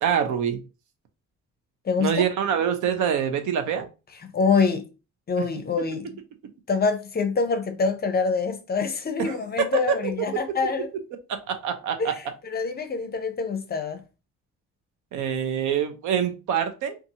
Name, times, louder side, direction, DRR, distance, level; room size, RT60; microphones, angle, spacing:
voice 1, 0.0-0.6 2.0-3.9 5.4-5.5 9.2-10.0 11.3-12.1 15.1-17.0, right 8 dB, 75° right, 0.6 m, -25 dB
voice 2, 1.8-2.3 4.2-4.8 5.3-6.2 6.7-10.9 12.0-14.0, left 5 dB, 30° left, 0.5 m, -25 dB
2.6 x 2.4 x 2.7 m
cardioid pair, 90°, 30 cm